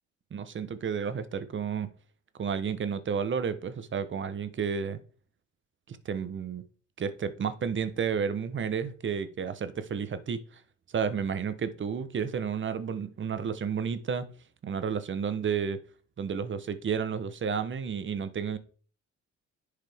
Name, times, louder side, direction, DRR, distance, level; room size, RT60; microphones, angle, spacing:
voice 1, 0.3-1.9 2.4-5.0 5.9-6.6 7.0-10.6 10.9-14.3 14.6-15.8 16.2-18.6, right 6 dB, 40° right, 0.8 m, -31 dB
10.5 x 4.9 x 3.5 m
cardioid pair, 90°, 30 cm